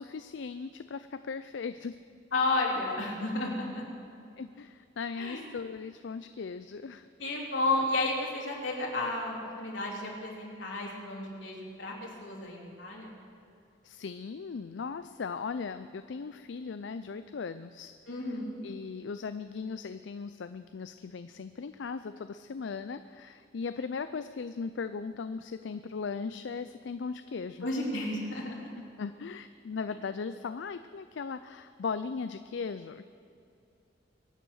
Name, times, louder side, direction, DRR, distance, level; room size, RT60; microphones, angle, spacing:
voice 1, 0.0-2.0 4.4-7.1 13.8-17.9 18.2-27.7 28.8-33.0, left 5 dB, 70° left, 11 dB, 0.4 m, -38 dB
voice 2, 2.3-3.9 5.2-5.4 7.2-13.1 18.1-18.6 27.6-28.7, left 2 dB, 90° left, -2 dB, 3.5 m, -32 dB
23.0 x 9.0 x 6.4 m, 2.6 s
head